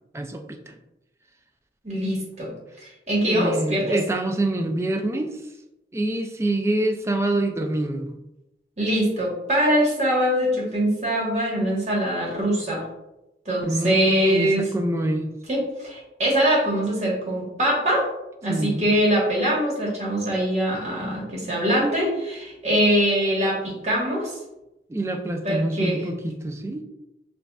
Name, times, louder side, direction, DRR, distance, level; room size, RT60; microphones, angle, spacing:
voice 1, 0.1-0.8 3.2-5.4 5.9-8.2 13.6-15.3 18.5-19.0 24.9-26.8, right 1 dB, 15° right, 5 dB, 0.3 m, -26 dB
voice 2, 1.8-2.5 2.8-4.0 8.8-12.8 13.4-14.7 15.5-18.1 18.4-24.4 25.4-26.0, equal, 40° right, -3 dB, 1.2 m, -23 dB
6.9 x 2.5 x 2.3 m, 0.94 s
head